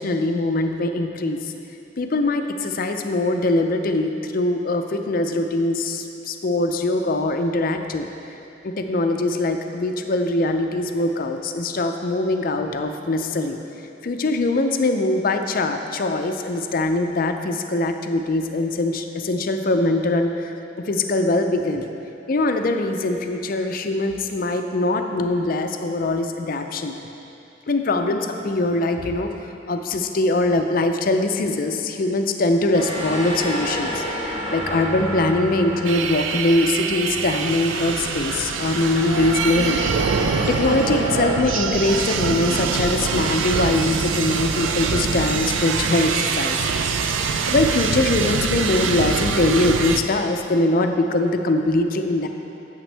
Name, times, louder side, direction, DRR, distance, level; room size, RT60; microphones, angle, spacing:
voice 1, 0.0-1.5 2.0-8.1 8.6-13.6 14.0-20.5 20.9-21.9 22.3-26.9 27.7-29.3 29.7-39.8 40.5-46.6 47.5-52.3, left 2 dB, 50° left, 6 dB, 0.5 m, -22 dB
sound 1, 32.7-37.3 37.7-41.4, equal, 30° right, 1.6 m, -30 dB
sound 2, 35.8-50.0, right 5 dB, 90° right, 0.4 m, -24 dB
8.8 x 8.1 x 3.3 m, 2.8 s
head